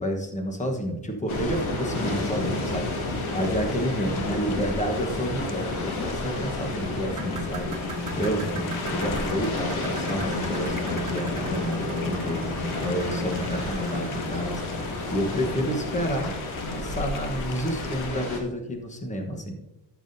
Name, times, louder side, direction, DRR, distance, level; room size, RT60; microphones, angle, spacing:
voice 1, 0.0-2.9 3.3-12.4 12.8-14.6 15.1-16.3 16.7-19.5, equal, 15° left, 3 dB, 1.2 m, -30 dB
sound 1, 1.3-18.4, left 2 dB, 85° left, 2.0 m, -31 dB
sound 2, 2.2-18.1, left 6 dB, 45° left, 0.7 m, -43 dB
sound 3, 7.0-15.4 16.8-17.0 17.5-17.6 18.2-18.3, equal, 40° right, 2.1 m, -36 dB
14.5 x 7.2 x 2.7 m, 0.92 s
wide cardioid pair, 170°, 48 cm